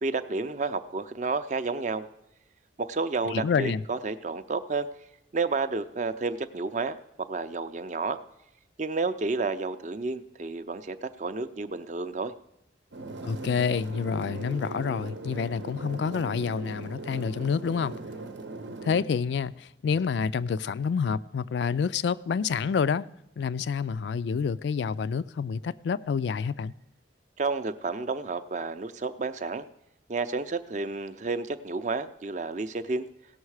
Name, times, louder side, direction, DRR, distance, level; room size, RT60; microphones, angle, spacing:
voice 1, 0.0-2.1 2.8-4.9 5.3-8.2 8.8-12.3 27.4-29.7 30.1-33.1, right 3 dB, 40° right, 0.4 m, -31 dB
voice 2, 3.3-3.8 13.2-17.9 18.8-23.1 23.4-26.7, left 6 dB, 70° left, 0.3 m, -28 dB
sound 1, 12.9-19.0, right 2 dB, 85° right, 0.8 m, -39 dB
17.0 x 6.4 x 4.8 m
head